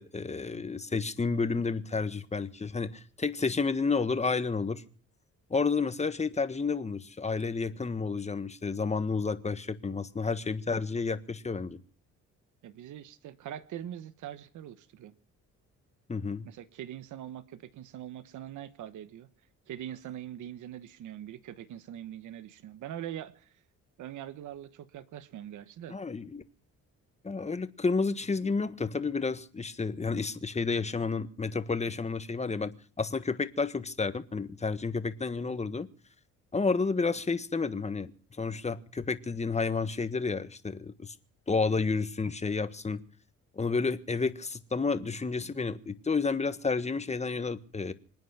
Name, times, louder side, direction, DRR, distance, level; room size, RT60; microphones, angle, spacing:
voice 1, 0.0-4.8 5.5-11.8 16.1-16.5 25.9-26.4 27.2-35.9 36.5-38.1 38.4-41.1 41.5-43.0 43.5-47.9, left 4 dB, 20° left, 1.4 m, -31 dB
voice 2, 12.6-15.1 16.4-19.3 19.7-23.5 24.0-26.0, right 11 dB, 75° right, 1.2 m, -42 dB
26.0 x 9.4 x 5.9 m
cardioid pair, 90°, 30 cm